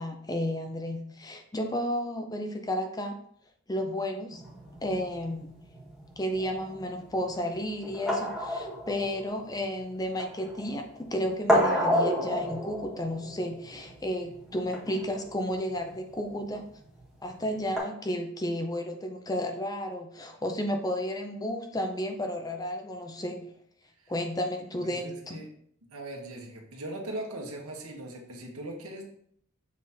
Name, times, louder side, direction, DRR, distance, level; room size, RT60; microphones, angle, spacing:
voice 1, 0.0-3.1 3.7-4.4 4.8-5.5 6.2-16.6 17.2-23.5 24.1-25.4, equal, 15° left, 5 dB, 0.6 m, -32 dB
sound 1, 4.3-17.8, equal, ahead, 1.5 m, -32 dB
voice 2, 24.8-25.5 25.9-29.0, right 1 dB, 80° right, 1 dB, 1.5 m, -40 dB
7.4 x 3.7 x 4.4 m, 0.65 s
head